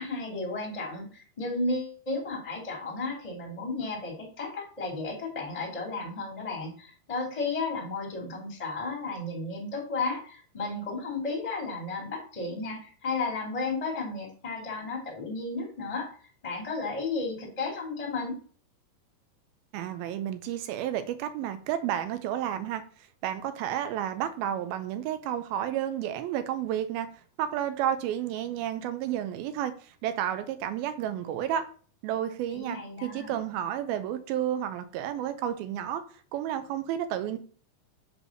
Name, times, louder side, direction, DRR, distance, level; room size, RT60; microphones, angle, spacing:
voice 1, 0.0-16.1 16.4-18.4 32.5-33.3, left 3 dB, 15° left, 1.2 m, -33 dB
voice 2, 19.7-22.8 23.2-27.1 27.4-31.6 32.0-36.0 36.3-37.4, right 10 dB, 80° right, 2.2 m, -31 dB
7.6 x 3.3 x 6.3 m
omnidirectional pair, 4.9 m